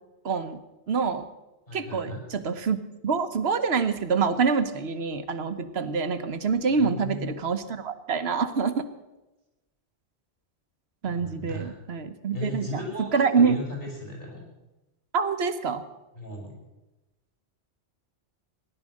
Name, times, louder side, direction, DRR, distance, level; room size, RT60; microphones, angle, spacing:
voice 1, 0.2-0.6 0.9-1.2 1.7-8.8 11.0-13.6 15.1-15.8, right 5 dB, 70° right, 10 dB, 1.3 m, -26 dB
voice 2, 1.7-2.2 6.7-7.3 11.0-11.7 12.3-14.5 16.1-16.5, left 1 dB, 55° left, -1 dB, 6.3 m, -36 dB
17.0 x 11.5 x 6.4 m, 1.0 s
omnidirectional pair, 1.1 m